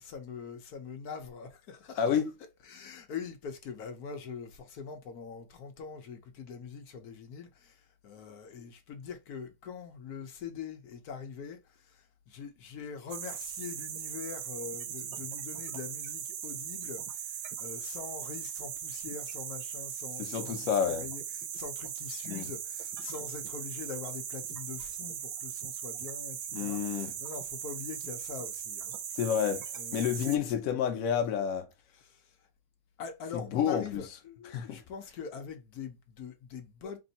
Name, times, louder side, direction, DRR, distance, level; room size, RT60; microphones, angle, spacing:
voice 1, 0.0-2.2 2.6-28.9 29.7-30.6 31.9-32.3 33.0-37.0, left 6 dB, 60° left, 1.0 m, -43 dB
voice 2, 2.0-2.3 20.2-21.1 22.3-22.5 26.5-27.1 29.1-31.7 33.3-34.0 34.5-34.8, left 8 dB, 80° left, 0.7 m, -30 dB
sound 1, 13.1-30.4, right 9 dB, 75° right, 1.3 m, -39 dB
3.4 x 2.6 x 4.0 m
omnidirectional pair, 2.3 m